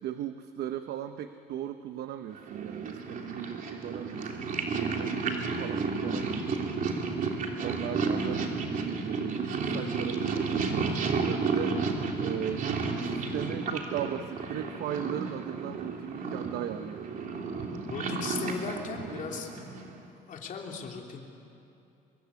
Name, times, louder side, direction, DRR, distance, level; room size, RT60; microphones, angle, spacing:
voice 1, 0.0-6.7 7.6-11.8 12.2-17.1 18.4-18.5, right 10 dB, 75° right, 9 dB, 0.9 m, -37 dB
Purr, 2.4-20.0, right 4 dB, 50° right, 3.2 m, -32 dB
voice 2, 17.9-19.7 20.3-21.3, left 6 dB, 50° left, 1 dB, 3.2 m, -37 dB
25.0 x 22.5 x 8.3 m, 2.8 s
cardioid pair, 110°, 17 cm